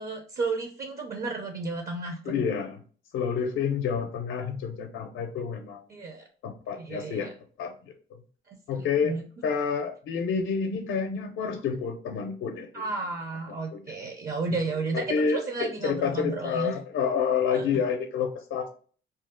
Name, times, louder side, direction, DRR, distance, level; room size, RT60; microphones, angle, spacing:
voice 1, 0.0-2.4 5.9-6.2 6.8-7.3 8.5-9.2 11.4-11.5 12.7-16.7 17.5-17.6, right 3 dB, 50° right, 3 dB, 0.6 m, -33 dB
voice 2, 2.3-2.8 3.1-5.8 6.4-7.3 7.6-7.7 8.7-9.2 9.4-12.7 13.7-14.0 14.9-18.7, left 6 dB, 75° left, 5 dB, 0.5 m, -29 dB
2.7 x 2.0 x 3.6 m, 0.43 s
cardioid pair, 90°, 20 cm